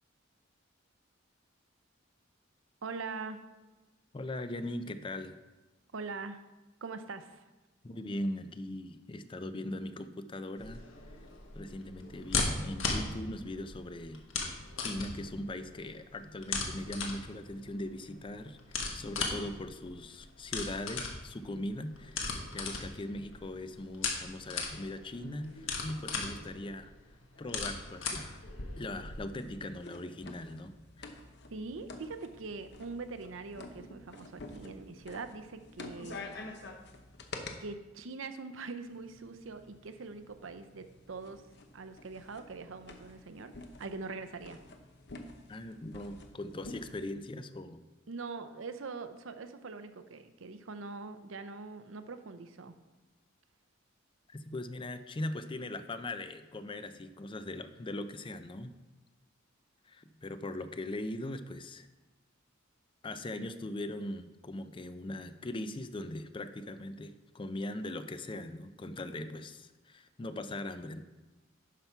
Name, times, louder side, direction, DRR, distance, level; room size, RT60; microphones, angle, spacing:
voice 1, 2.8-3.4 5.9-6.4 6.8-7.5 31.5-36.3 37.6-41.4 41.7-43.5 43.8-44.6 48.1-52.7, right 4 dB, 75° right, 10 dB, 0.7 m, -43 dB
voice 2, 4.1-5.4 7.8-10.8 11.6-26.9 27.4-28.4 28.8-31.2 45.5-47.8 54.3-58.7 59.9-61.9 63.0-71.0, left 1 dB, 25° left, 10 dB, 0.5 m, -40 dB
sound 1, 10.6-29.2, left 4 dB, 80° left, 1.5 m, -38 dB
sound 2, 29.0-37.6 38.9-47.0, left 2 dB, 60° left, 0.9 m, -49 dB
11.0 x 5.8 x 4.5 m, 1.1 s
head